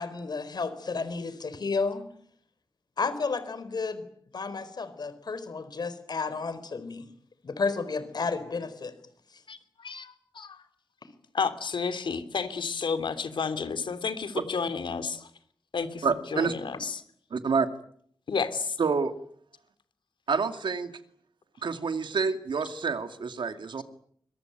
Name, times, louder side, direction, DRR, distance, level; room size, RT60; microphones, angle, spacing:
voice 1, 0.0-2.0 3.0-4.0 4.3-7.1 7.4-8.9 9.3-9.4 16.3-16.5, left 4 dB, 60° left, 13 dB, 4.3 m, -32 dB
voice 2, 9.5-10.6 11.3-15.3 15.7-16.1 16.3-17.0 18.3-18.8, left 5 dB, 85° left, 11 dB, 3.1 m, -31 dB
voice 3, 16.0-16.5 17.3-17.7 18.8-19.1 20.3-20.9 21.6-23.8, right 5 dB, 75° right, 9 dB, 2.4 m, -28 dB
25.5 x 23.5 x 9.2 m, 0.64 s
wide cardioid pair, 145°, 8 cm